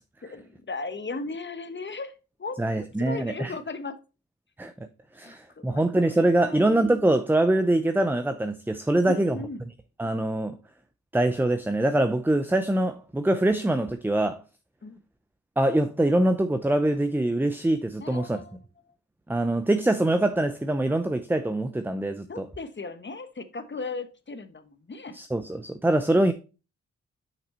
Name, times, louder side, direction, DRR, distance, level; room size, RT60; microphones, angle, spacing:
voice 1, 0.2-2.6 3.0-4.0 5.2-5.8 6.2-6.7 9.1-9.6 14.8-15.0 18.0-18.5 22.3-25.2, left 3 dB, 40° left, 1.0 m, -37 dB
voice 2, 2.6-3.5 4.6-4.7 5.1-9.4 10.0-10.6 11.1-14.4 15.6-18.4 19.3-22.5 25.1-26.3, right 1 dB, 5° right, 0.6 m, -24 dB
6.1 x 5.6 x 4.3 m
cardioid pair, 65°, 29 cm